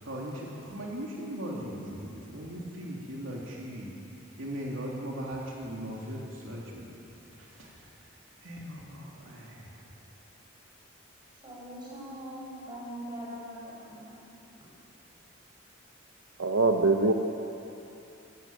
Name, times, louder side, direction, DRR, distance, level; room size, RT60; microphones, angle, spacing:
voice 1, 0.0-3.9 4.4-7.0 7.3-9.9, equal, 70° right, -3 dB, 3.2 m, -39 dB
voice 2, 11.4-14.2, equal, 20° right, -5 dB, 7.0 m, -42 dB
voice 3, 16.4-17.1, right 3 dB, 90° right, 4 dB, 1.1 m, -23 dB
22.5 x 14.0 x 9.0 m, 2.9 s
head